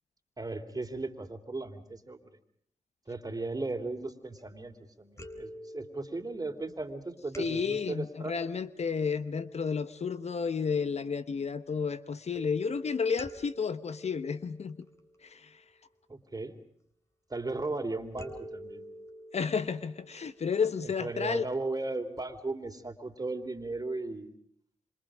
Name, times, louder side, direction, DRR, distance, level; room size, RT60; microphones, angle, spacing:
voice 1, 0.4-2.3 3.1-8.3 16.1-16.5 17.3-18.8 20.8-24.3, right 2 dB, 30° right, 3.4 m, -36 dB
sound 1, 4.3-4.8 5.2-10.8 12.3-15.6 18.2-21.4 22.2-22.3 22.6-22.7, equal, 20° left, 3.9 m, -48 dB
voice 2, 7.4-14.8 15.2-15.5 19.3-21.5, left 5 dB, 55° left, 1.1 m, -32 dB
27.5 x 25.5 x 5.1 m
supercardioid pair, 40°, 13 cm